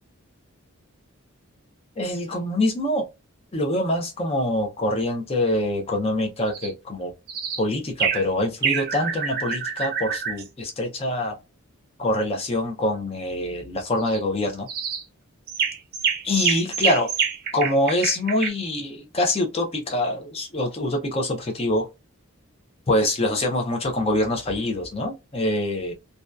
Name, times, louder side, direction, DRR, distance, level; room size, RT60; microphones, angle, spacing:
voice 1, 2.0-3.0 3.5-7.1 7.6-11.4 12.0-14.7 16.2-17.1 17.5-21.9 22.9-25.9, left 1 dB, 25° left, 0.5 m, -25 dB
sound 1, 6.5-6.7 7.3-7.6 8.0-8.3 8.6-10.4 14.0-14.2 14.7-15.0 15.5-18.5, right 7 dB, 45° right, 0.5 m, -26 dB
2.6 x 2.2 x 2.2 m
head